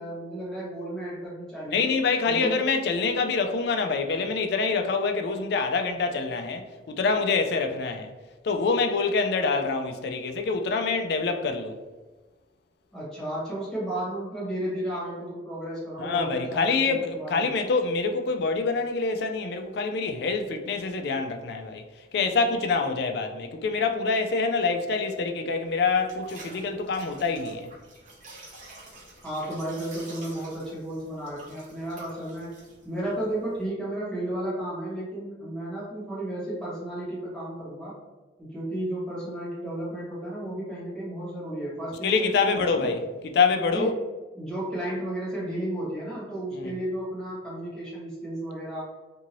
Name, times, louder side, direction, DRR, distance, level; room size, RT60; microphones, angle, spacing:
voice 1, 0.0-1.9 2.2-2.6 12.9-17.4 29.2-32.5 32.8-37.9 38.4-42.9 43.7-43.9 44.3-48.9, right 1 dB, ahead, 1.3 m, -33 dB
voice 2, 1.7-8.1 8.4-11.8 16.0-21.8 22.1-27.7 42.0-43.9 46.5-46.7, left 4 dB, 55° left, 0.3 m, -26 dB
sound 1, 25.6-33.7, right 2 dB, 40° right, 0.9 m, -49 dB
2.7 x 2.6 x 2.9 m
head